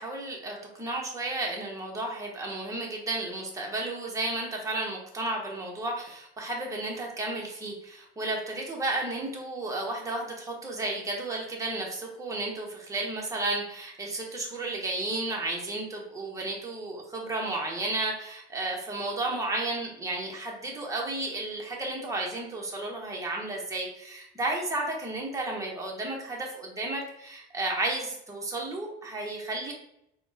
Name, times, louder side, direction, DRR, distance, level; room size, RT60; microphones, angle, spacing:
voice 1, 0.0-29.7, right 2 dB, 15° right, -1 dB, 1.0 m, -33 dB
4.2 x 2.3 x 2.8 m, 0.77 s
supercardioid pair, 105°, 20 cm